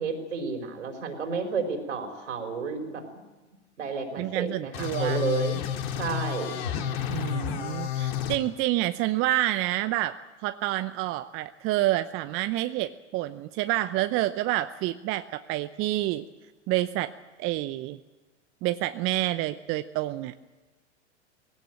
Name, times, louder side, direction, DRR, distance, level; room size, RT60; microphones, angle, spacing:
voice 1, 0.0-3.0 3.8-5.6 6.0-6.6, right 5 dB, 75° right, 5 dB, 4.5 m, -31 dB
voice 2, 4.2-5.2 7.1-16.2 16.7-17.1 17.4-18.0 18.6-20.3, right 16 dB, 35° right, 11 dB, 0.8 m, -28 dB
sound 1, 4.7-8.4, left 10 dB, 55° left, 2.7 m, -30 dB
20.0 x 17.0 x 9.0 m, 1.2 s
hypercardioid pair, 100°, 36 cm